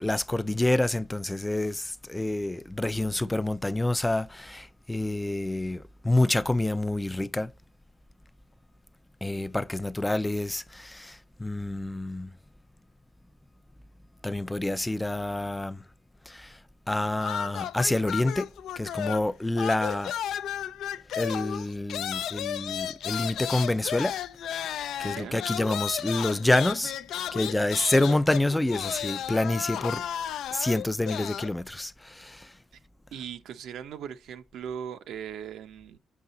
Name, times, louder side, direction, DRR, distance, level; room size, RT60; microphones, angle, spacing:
voice 1, 0.0-7.5 9.2-12.3 14.2-15.8 16.3-16.5 16.9-18.5 18.8-20.1 21.2-24.1 25.0-26.9 27.3-30.0 30.5-32.5, left 2 dB, 10° left, 0.4 m, -27 dB
sound 1, 17.2-19.3 19.6-31.5, left 10 dB, 75° left, 0.4 m, -34 dB
voice 2, 25.0-25.4 33.1-36.0, right 8 dB, 75° right, 0.7 m, -39 dB
7.3 x 5.6 x 3.9 m
cardioid pair, 90°, 0 cm